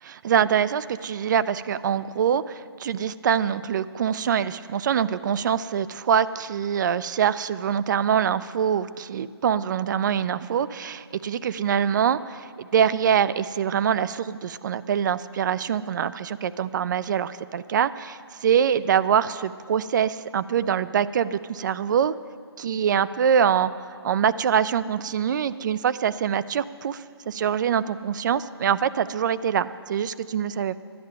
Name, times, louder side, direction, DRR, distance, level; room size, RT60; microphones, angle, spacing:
voice 1, 0.0-22.1 22.6-30.8, right 8 dB, 45° right, 16 dB, 0.4 m, -24 dB
11.0 x 6.5 x 9.4 m, 2.1 s
hypercardioid pair, 155°, 14 cm